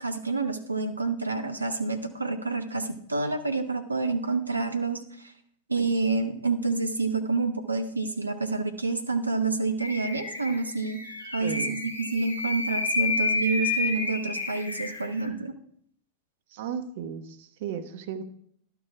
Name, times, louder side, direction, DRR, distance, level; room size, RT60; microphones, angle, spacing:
voice 1, 0.0-5.3 5.7-11.0 11.3-15.5, right 3 dB, 80° right, 8 dB, 0.7 m, -28 dB
sound 1, 9.8-15.3, left 3 dB, 70° left, 3.9 m, -30 dB
voice 2, 11.4-11.8 16.5-18.2, right 7 dB, 55° right, 9 dB, 1.0 m, -35 dB
11.5 x 7.0 x 4.7 m, 0.66 s
figure-of-eight pair, 90°, 0 cm